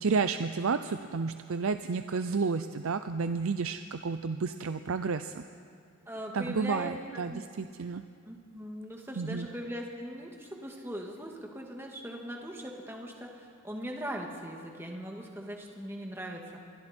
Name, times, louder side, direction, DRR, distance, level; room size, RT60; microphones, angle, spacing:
voice 1, 0.0-5.4 6.3-8.0 9.2-9.5, right 4 dB, 80° right, 10 dB, 0.5 m, -31 dB
voice 2, 6.1-7.5 8.2-16.6, equal, 10° right, 0 dB, 2.0 m, -40 dB
27.0 x 21.5 x 4.4 m, 2.4 s
head